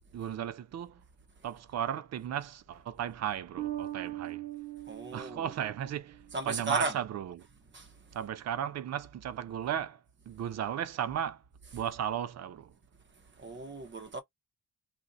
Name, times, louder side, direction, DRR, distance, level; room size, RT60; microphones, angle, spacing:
voice 1, 0.1-1.0 1.4-4.4 5.1-6.2 6.5-7.5 8.1-10.0 10.3-11.4 11.7-12.7, right 9 dB, 50° right, 0.6 m, -35 dB
Bass guitar, 3.6-6.6, right 14 dB, 80° right, 0.9 m, -40 dB
voice 2, 4.9-5.5 6.3-7.0 7.7-8.0 13.4-14.2, right 3 dB, 35° right, 1.2 m, -35 dB
2.6 x 2.5 x 4.0 m
cardioid pair, 120°, 33 cm